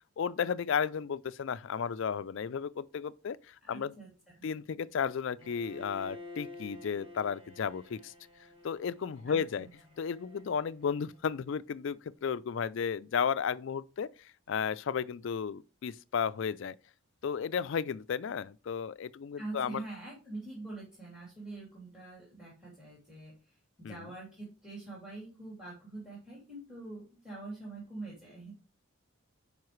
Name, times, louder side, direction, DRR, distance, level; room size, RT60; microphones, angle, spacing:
voice 1, 0.2-4.0 4.4-8.1 8.6-9.7 10.0-14.1 14.5-16.8 17.2-19.8 23.8-24.0, left 7 dB, 60° left, 0.3 m, -33 dB
voice 2, 3.6-4.4 9.2-9.7 19.4-28.5, right 2 dB, 5° right, 2.9 m, -45 dB
Bowed string instrument, 5.4-11.4, left 3 dB, 25° right, 1.7 m, -51 dB
9.5 x 5.2 x 3.1 m
head